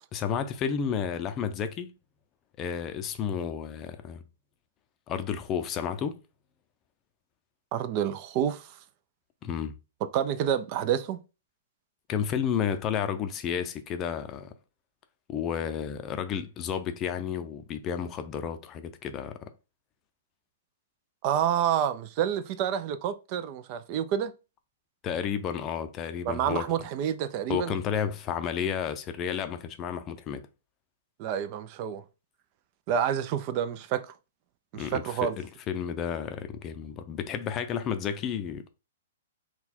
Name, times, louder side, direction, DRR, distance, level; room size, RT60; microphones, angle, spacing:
voice 1, 0.1-1.9 2.6-4.2 5.1-6.2 9.4-9.8 12.1-14.5 15.3-19.5 25.0-26.7 27.5-30.5 34.7-38.6, left 8 dB, 25° left, 0.5 m, -31 dB
voice 2, 7.7-8.7 10.1-11.2 21.2-24.3 26.2-27.7 31.2-32.0 32.9-34.1 34.7-35.4, right 9 dB, 40° right, 0.4 m, -28 dB
4.1 x 2.3 x 4.3 m
hypercardioid pair, 135°, 0 cm